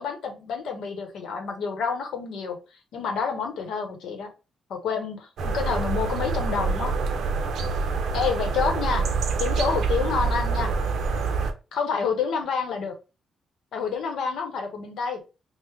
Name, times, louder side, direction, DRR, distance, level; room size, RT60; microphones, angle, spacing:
voice 1, 0.0-2.6 2.9-4.3 4.7-5.3 5.5-6.9 8.1-9.1 9.4-10.7 11.7-12.9 13.7-15.2, left 6 dB, 80° left, 4 dB, 0.8 m, -28 dB
sound 1, 5.4-11.5, right 4 dB, 75° right, 0.5 m, -26 dB
3.1 x 2.0 x 3.4 m, 0.30 s
cardioid pair, 150°, 0 cm